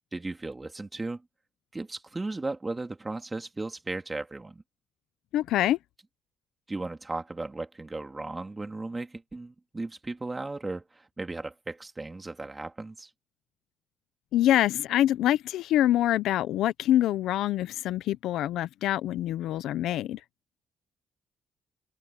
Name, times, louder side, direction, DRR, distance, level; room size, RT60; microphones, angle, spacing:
voice 1, 0.1-1.2 1.7-4.6 6.7-13.1, right 2 dB, 20° right, 2.8 m, -36 dB
voice 2, 5.3-5.8 14.3-20.2, left 13 dB, 85° left, 0.7 m, -25 dB
cardioid pair, 90°, 0 cm